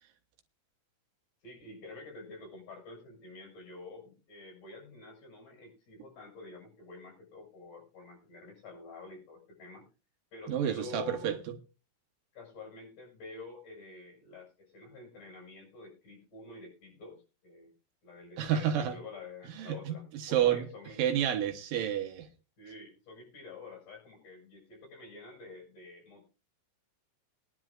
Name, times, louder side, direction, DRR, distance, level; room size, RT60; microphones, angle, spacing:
voice 1, 1.4-9.8 10.3-11.3 12.3-17.7 18.0-21.1 22.6-26.3, left 3 dB, 60° left, 7.6 m, -48 dB
voice 2, 10.5-11.4 18.4-19.0 19.6-20.7 21.0-22.3, right 9 dB, 70° right, 2.7 m, -30 dB
23.0 x 11.0 x 2.5 m
omnidirectional pair, 4.2 m